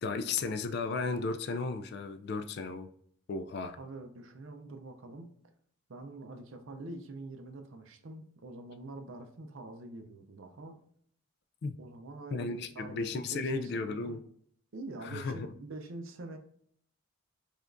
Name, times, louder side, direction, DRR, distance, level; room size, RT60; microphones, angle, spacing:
voice 1, 0.0-2.9 3.3-3.8 11.6-11.8 12.3-14.2 15.0-15.5, left 4 dB, 50° left, 0.3 m, -34 dB
voice 2, 3.8-5.3 5.9-10.8 11.8-14.2 14.7-16.4, right 2 dB, 65° right, 0.6 m, -45 dB
4.9 x 2.4 x 2.5 m
head